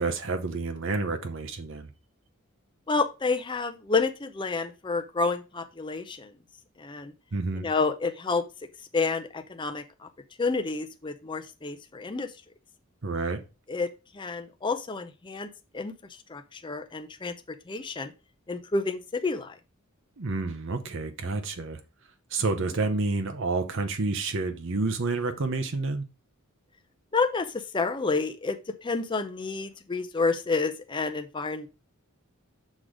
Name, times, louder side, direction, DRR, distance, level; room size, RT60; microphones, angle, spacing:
voice 1, 0.0-1.9 7.3-7.7 13.0-13.4 20.2-21.8 22.3-26.1, right 3 dB, 60° right, 0.8 m, -29 dB
voice 2, 2.9-6.3 6.8-7.1 7.5-8.4 8.9-10.1 10.4-12.3 13.7-13.9 14.1-17.3 17.7-18.1 18.5-19.5 27.1-31.7, left 4 dB, 20° left, 0.5 m, -29 dB
6.2 x 3.9 x 4.9 m
head